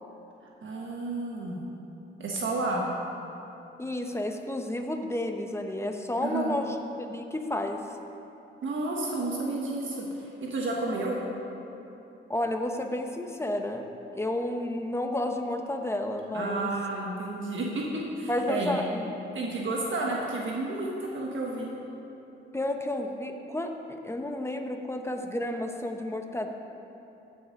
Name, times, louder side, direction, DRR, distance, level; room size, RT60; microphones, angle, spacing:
voice 1, 0.6-1.6 2.2-2.9 6.2-6.5 8.6-11.2 16.3-18.8 19.3-21.7, right 2 dB, 70° right, -2 dB, 1.3 m, -31 dB
voice 2, 3.8-7.8 12.3-13.9 14.1-16.7 18.3-19.1 22.5-26.5, left 1 dB, 10° left, 4 dB, 0.9 m, -31 dB
14.5 x 5.6 x 5.1 m, 3.0 s
cardioid pair, 75°, 21 cm